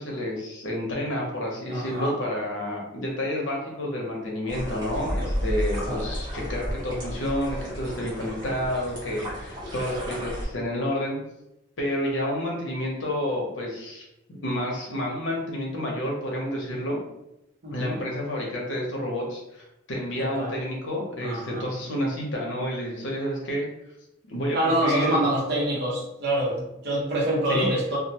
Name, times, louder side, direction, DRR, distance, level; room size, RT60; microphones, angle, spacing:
voice 1, 0.0-11.2 11.8-17.0 17.7-19.4 19.9-23.7 24.3-25.2 27.5-27.7, left 1 dB, 80° left, -2 dB, 0.8 m, -29 dB
voice 2, 1.7-2.1 5.8-6.1 17.6-18.0 20.2-20.5 21.2-21.7 24.5-28.0, right 1 dB, 60° right, -5 dB, 1.0 m, -26 dB
sound 1, 4.5-10.4, equal, 25° right, 0.9 m, -32 dB
2.4 x 2.2 x 2.8 m, 0.85 s
head